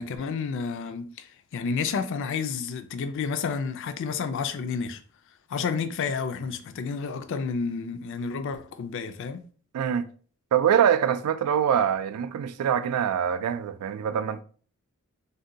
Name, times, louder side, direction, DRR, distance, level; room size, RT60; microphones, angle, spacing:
voice 1, 0.0-5.0 5.5-9.5, left 5 dB, 55° left, 0.3 m, -30 dB
voice 2, 9.7-10.1 10.5-14.4, right 8 dB, 85° right, 0.3 m, -24 dB
2.6 x 2.2 x 3.7 m
head